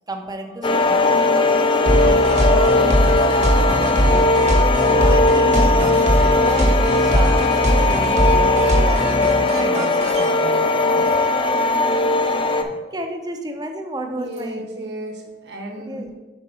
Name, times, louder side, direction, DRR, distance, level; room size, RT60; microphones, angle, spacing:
voice 1, 0.1-1.2 1.7-4.3 4.8-11.0 12.2-12.6 12.9-14.7 15.9-16.1, right 1 dB, 20° right, 4 dB, 0.6 m, -32 dB
sound 1, 0.6-12.6, left 2 dB, 30° left, 0.4 m, -18 dB
sound 2, 1.9-10.3, equal, 40° right, 1.1 m, -20 dB
voice 2, 14.1-16.1, right 1 dB, 75° right, 3 dB, 1.1 m, -34 dB
5.1 x 4.6 x 5.5 m, 1.2 s
head